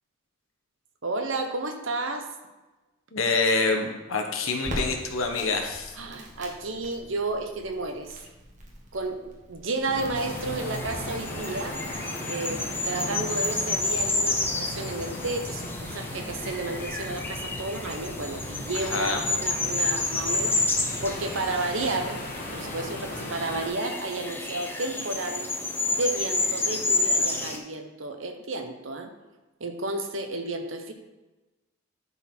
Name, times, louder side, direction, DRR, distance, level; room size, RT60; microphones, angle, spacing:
voice 1, 1.0-2.3 6.0-8.1 8.9-11.8 12.2-25.5 25.9-29.1 29.6-30.9, right 2 dB, 70° right, 6 dB, 0.9 m, -32 dB
voice 2, 3.1-5.9 18.7-19.2, left 3 dB, 85° left, 3 dB, 1.2 m, -26 dB
Crackle, 4.6-11.9, equal, 40° right, 1.6 m, -42 dB
sound 1, 9.8-23.7, left 1 dB, 50° left, 1.2 m, -38 dB
sound 2, 10.1-27.6, left 2 dB, 10° left, 0.7 m, -30 dB
11.0 x 4.1 x 4.4 m, 1.1 s
head